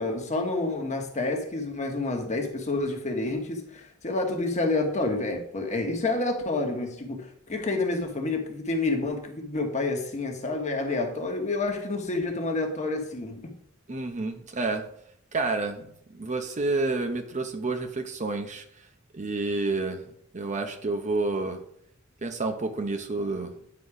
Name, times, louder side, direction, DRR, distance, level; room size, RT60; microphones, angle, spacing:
voice 1, 0.0-13.5, left 2 dB, 35° left, 1.2 m, -29 dB
voice 2, 13.9-14.8 15.3-18.6 19.1-20.0 20.3-21.6 22.2-23.5, right 3 dB, 35° right, 0.8 m, -29 dB
9.7 x 4.0 x 4.9 m
head